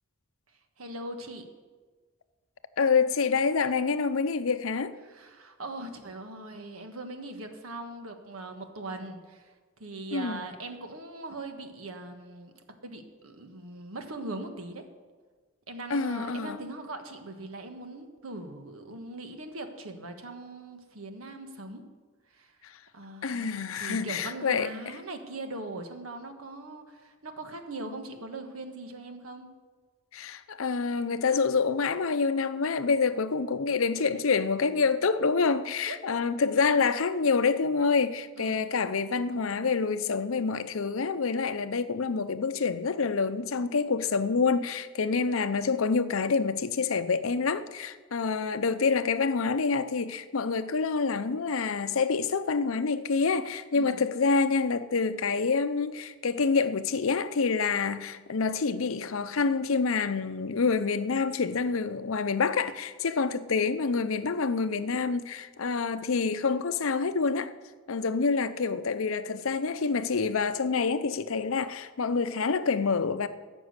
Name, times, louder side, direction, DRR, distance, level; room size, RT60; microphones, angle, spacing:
voice 1, 0.8-1.4 5.0-9.5 9.8-14.8 15.7-21.8 22.3-22.7 22.9-29.5 34.1-34.2 35.9-36.0 38.4-38.7 53.7-54.0, right 2 dB, 75° right, 1.4 m, -40 dB
voice 2, 2.8-4.9 10.1-10.4 15.9-16.6 22.6-22.7 23.2-25.0 30.1-67.5 67.9-73.3, left 4 dB, 65° left, 0.6 m, -27 dB
14.5 x 6.2 x 8.1 m
head